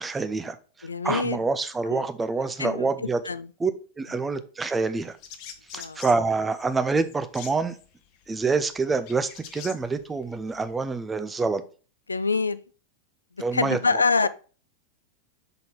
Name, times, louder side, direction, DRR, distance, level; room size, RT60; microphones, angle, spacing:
voice 1, 0.0-3.2 3.6-3.7 4.0-5.2 5.7-7.8 8.3-11.6 13.4-13.8, right 4 dB, 15° right, 0.6 m, -26 dB
voice 2, 0.8-1.4 1.9-2.0 2.6-2.9 3.3-3.5 5.7-6.0 12.1-12.6 13.5-14.3, left 4 dB, 75° left, 0.3 m, -25 dB
sound 1, 5.0-11.0, left 8 dB, 45° left, 0.9 m, -45 dB
5.9 x 4.0 x 4.6 m
figure-of-eight pair, 90°, 0 cm